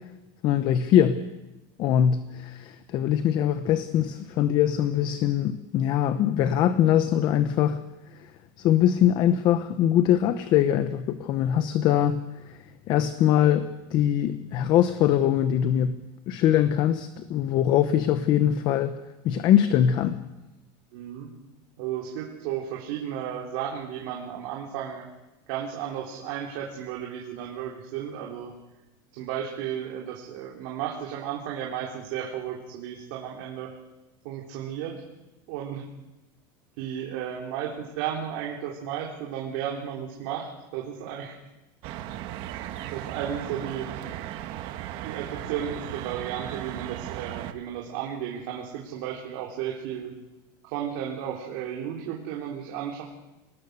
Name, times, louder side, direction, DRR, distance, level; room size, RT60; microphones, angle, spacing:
voice 1, 0.4-1.2 1.8-7.8 8.1-8.3 8.6-12.2 12.4-12.6 12.9-16.0 16.3-19.0 19.2-20.2, left 10 dB, 40° left, 11 dB, 0.9 m, -22 dB
voice 2, 20.9-21.3 21.8-25.1 25.5-28.5 29.1-33.7 34.2-35.0 35.5-35.9 36.8-37.7 38.0-41.4 42.9-43.9 45.0-50.1 50.6-53.0, right 9 dB, 60° right, -2 dB, 3.5 m, -34 dB
sound 1, 41.8-47.5, right 12 dB, 45° right, 1.4 m, -36 dB
27.0 x 19.5 x 6.7 m, 1.0 s
supercardioid pair, 170°, 12 cm